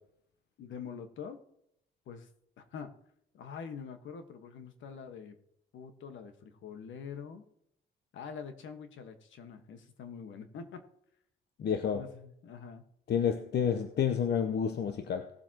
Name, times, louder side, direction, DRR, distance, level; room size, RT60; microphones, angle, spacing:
voice 1, 0.6-1.4 2.1-2.3 2.6-2.9 3.3-5.4 5.7-7.4 8.1-10.8 11.9-12.8, left 6 dB, 75° left, 1.4 m, -45 dB
voice 2, 11.6-12.0 13.1-15.3, left 7 dB, 55° left, 0.8 m, -29 dB
18.5 x 7.6 x 2.9 m
cardioid pair, 90°, 20 cm